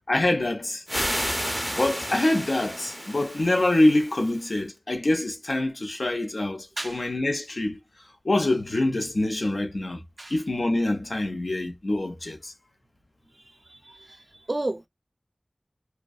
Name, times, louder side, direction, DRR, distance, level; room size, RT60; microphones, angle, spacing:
voice 1, 0.1-0.8 1.7-7.8 8.2-10.0 10.3-12.5, left 1 dB, 85° left, 0.6 m, -25 dB
sound 1, 0.9-4.5, equal, ahead, 0.5 m, -32 dB
voice 2, 6.8-7.1 10.2-10.3 13.7-14.2 14.5-14.9, right 2 dB, 55° right, 0.4 m, -32 dB
2.6 x 2.2 x 2.2 m
wide cardioid pair, 45°, 0 cm